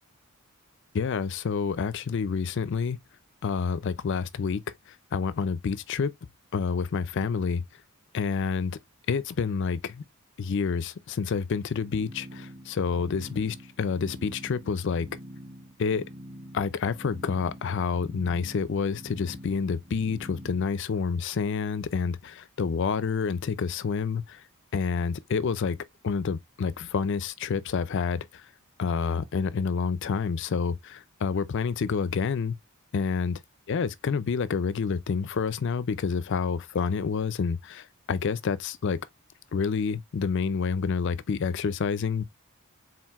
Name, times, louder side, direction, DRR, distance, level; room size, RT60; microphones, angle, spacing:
voice 1, 0.9-3.0 3.4-4.6 4.9-6.1 6.5-7.6 8.1-8.8 9.1-10.0 10.4-15.1 15.8-16.0 16.5-24.4 24.7-25.8 26.0-28.5 28.8-32.6 32.9-33.4 33.7-39.0 39.5-42.2, left 5 dB, 55° left, 0.4 m, -28 dB
sound 1, 11.8-20.7, equal, 40° right, 2.2 m, -46 dB
4.5 x 3.8 x 2.4 m
head